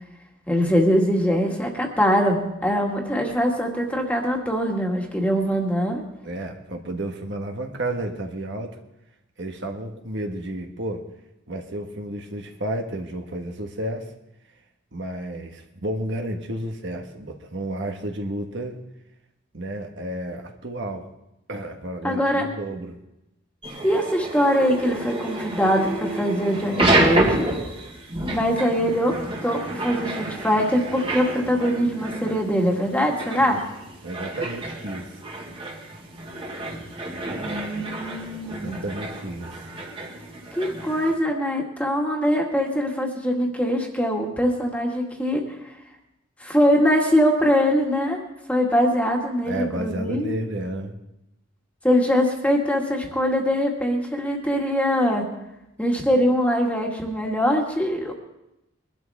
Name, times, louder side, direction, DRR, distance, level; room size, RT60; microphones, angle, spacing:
voice 1, 0.5-6.0 22.0-22.5 23.8-27.5 28.3-33.6 37.4-38.8 40.5-45.4 46.4-48.2 48.5-50.4 51.8-55.3 55.8-58.1, equal, 5° left, 0 dB, 2.0 m, -22 dB
voice 2, 6.2-8.8 9.4-11.0 11.5-14.1 14.9-18.8 19.5-21.0 21.5-23.0 34.0-35.2 38.4-39.7 49.4-51.0, right 1 dB, 65° right, 3 dB, 1.5 m, -31 dB
sound 1, 23.6-41.2, right 1 dB, 25° right, 1.8 m, -29 dB
23.0 x 12.0 x 3.6 m, 0.88 s
head